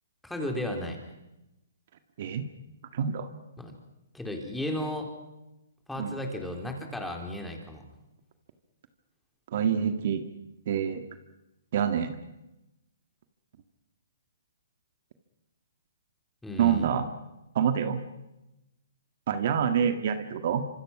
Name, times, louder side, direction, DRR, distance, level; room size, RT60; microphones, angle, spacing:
voice 1, 0.2-1.0 3.6-3.8 4.1-5.1 5.9-7.8 16.4-16.9, left 1 dB, 5° left, 2 dB, 3.9 m, -34 dB
voice 2, 2.9-3.3 6.0-6.2 9.5-10.2 10.7-11.0 11.7-12.1 16.6-17.1 17.6-18.0 19.3-20.7, right 8 dB, 55° right, 8 dB, 1.8 m, -26 dB
26.0 x 25.5 x 6.1 m, 0.93 s
hypercardioid pair, 140°, 0 cm